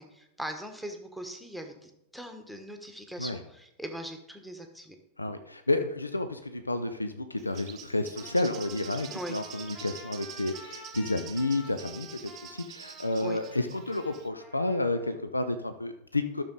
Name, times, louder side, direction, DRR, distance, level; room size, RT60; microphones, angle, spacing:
voice 1, 0.0-5.0 9.1-9.4 13.2-13.4, equal, ahead, 5 dB, 1.2 m, -40 dB
voice 2, 5.2-16.4, left 2 dB, 85° left, 9 dB, 0.5 m, -31 dB
Bird, 7.4-14.3, right 10 dB, 30° right, 0.7 m, -46 dB
Trumpet, 8.2-15.2, left 2 dB, 35° left, 2.6 m, -50 dB
12.5 x 6.4 x 3.9 m, 0.85 s
figure-of-eight pair, 90°, 0 cm